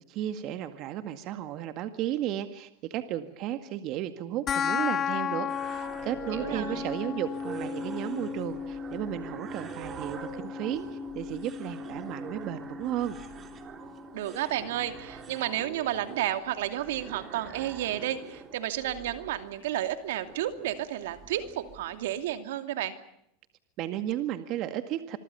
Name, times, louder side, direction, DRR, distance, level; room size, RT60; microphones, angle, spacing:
voice 1, 0.1-10.8 11.2-13.2 23.8-25.2, right 12 dB, 50° right, 9 dB, 2.0 m, -34 dB
sound 1, 4.5-15.4, left 7 dB, 30° left, 1.0 m, -36 dB
sound 2, 5.5-22.4, right 6 dB, 30° right, 3.6 m, -45 dB
voice 2, 6.3-6.9 14.1-22.9, right 12 dB, 80° right, 9 dB, 2.6 m, -32 dB
26.5 x 24.0 x 7.0 m, 0.75 s
supercardioid pair, 125°, 0 cm